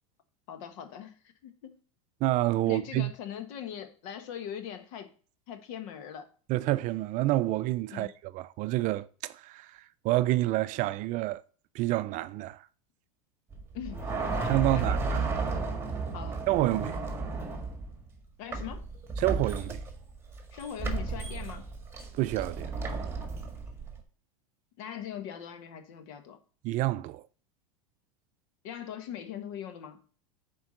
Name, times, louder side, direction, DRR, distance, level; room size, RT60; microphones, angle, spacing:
voice 1, 0.5-1.1 1.4-1.8 2.6-5.1 5.5-6.3 7.9-8.1 13.7-15.0 16.1-16.5 18.4-18.8 20.5-21.7 24.8-26.4 28.6-30.0, left 9 dB, 65° left, 1.4 m, -41 dB
voice 2, 2.2-3.1 6.5-9.7 10.0-11.4 11.7-12.6 14.5-15.2 16.5-17.0 19.2-19.8 22.2-22.7 26.6-27.2, right 17 dB, 45° right, 0.4 m, -28 dB
sound 1, 13.5-18.1 18.5-24.0, right 3 dB, 15° right, 1.6 m, -33 dB
7.1 x 4.6 x 6.4 m
supercardioid pair, 115°, 18 cm